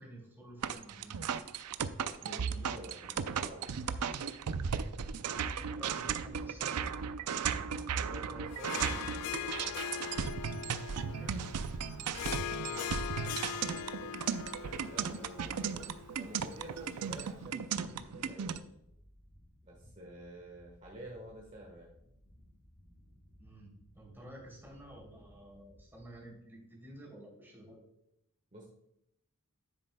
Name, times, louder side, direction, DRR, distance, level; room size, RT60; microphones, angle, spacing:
voice 1, 0.0-1.4 5.1-6.8 11.1-11.5 12.5-13.4 23.4-27.8, right 1 dB, 10° right, -3 dB, 3.1 m, -52 dB
sound 1, 0.6-18.6, right 7 dB, 90° right, 0.5 m, -36 dB
voice 2, 2.0-3.7 8.0-10.2 14.8-15.9 16.2-18.8 19.6-21.9 28.5-28.6, right 1 dB, 35° right, -2 dB, 1.4 m, -50 dB
sound 2, 6.2-26.1, equal, 40° left, 3.2 m, -60 dB
Harp, 8.5-17.1, left 9 dB, 80° left, 0.3 m, -41 dB
9.9 x 8.1 x 2.2 m, 0.79 s
head